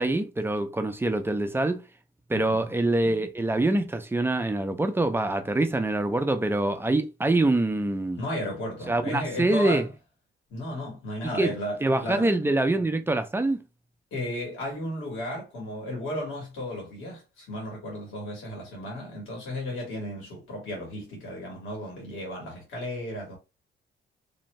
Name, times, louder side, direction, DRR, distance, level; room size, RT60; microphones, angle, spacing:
voice 1, 0.0-1.8 2.3-8.2 8.9-9.8 11.2-11.5 11.8-13.6, right 2 dB, 10° right, 0.4 m, -25 dB
voice 2, 2.3-2.7 8.2-9.9 10.5-12.3 14.1-23.4, left 1 dB, 80° left, 1.5 m, -34 dB
2.6 x 2.1 x 3.1 m
cardioid pair, 90°, 20 cm